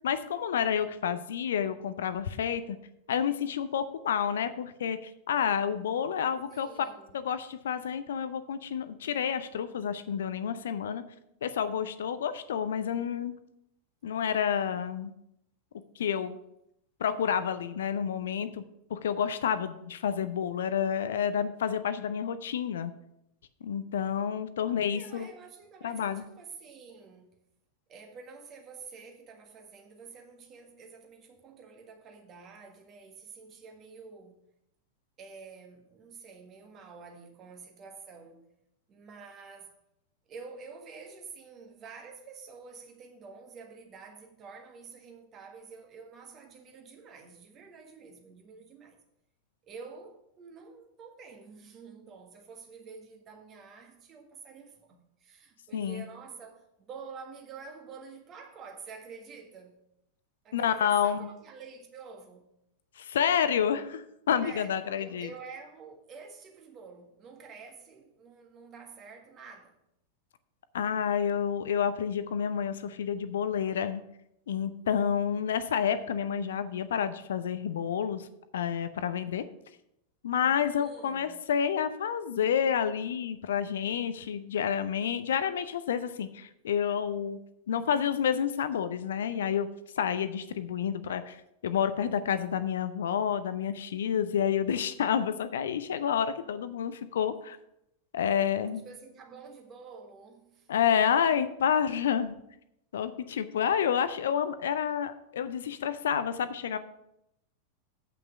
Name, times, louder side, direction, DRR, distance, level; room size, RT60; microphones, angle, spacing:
voice 1, 0.0-2.8 3.1-6.7 7.1-11.0 11.4-13.3 14.0-15.1 16.0-16.4 17.0-18.6 18.9-22.9 23.6-25.3 25.8-26.2 55.7-56.0 60.5-61.3 63.0-65.3 70.7-74.0 74.5-78.3 78.5-79.4 80.2-87.4 87.7-89.7 90.0-91.4 91.6-97.6 98.1-98.8 100.7-102.4 102.9-106.8, left 8 dB, 60° left, 0.5 m, -29 dB
voice 2, 6.5-7.1 24.9-27.4 27.9-34.4 35.2-38.4 38.9-39.7 40.3-49.0 49.6-59.8 60.4-62.4 64.4-69.8 80.8-81.4 98.8-100.7, right 5 dB, 30° right, 1.7 m, -48 dB
7.9 x 5.9 x 6.6 m
figure-of-eight pair, 90°, 0 cm